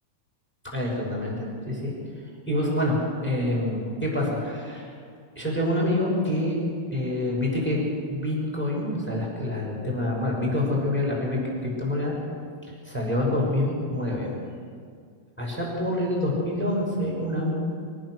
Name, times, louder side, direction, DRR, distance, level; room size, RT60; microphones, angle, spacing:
voice 1, 0.7-1.9 2.5-4.9 5.4-6.6 6.9-12.1 12.8-14.3 15.4-17.5, left 1 dB, 5° left, -3 dB, 5.6 m, -26 dB
24.0 x 19.0 x 6.4 m, 2.2 s
omnidirectional pair, 4.5 m